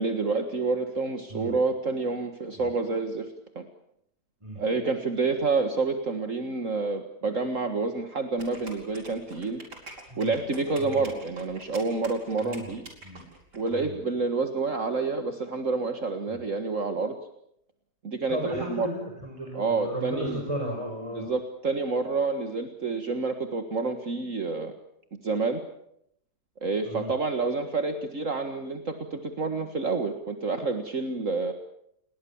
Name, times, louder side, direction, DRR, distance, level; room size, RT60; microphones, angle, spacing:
voice 1, 0.0-3.3 3.6-3.7 4.6-9.6 10.2-12.8 13.5-17.1 18.0-18.9 19.5-20.4 21.1-24.7 25.2-25.6 26.6-31.5, right 3 dB, 50° right, 6 dB, 2.1 m, -28 dB
sound 1, 8.4-13.7, right 2 dB, 85° right, 5.3 m, -45 dB
voice 2, 12.4-12.8 13.0-13.3 13.7-14.0 16.3-16.4 18.3-21.3 26.8-27.1, equal, 15° right, 0 dB, 5.4 m, -35 dB
29.5 x 21.5 x 7.2 m, 0.75 s
omnidirectional pair, 1.8 m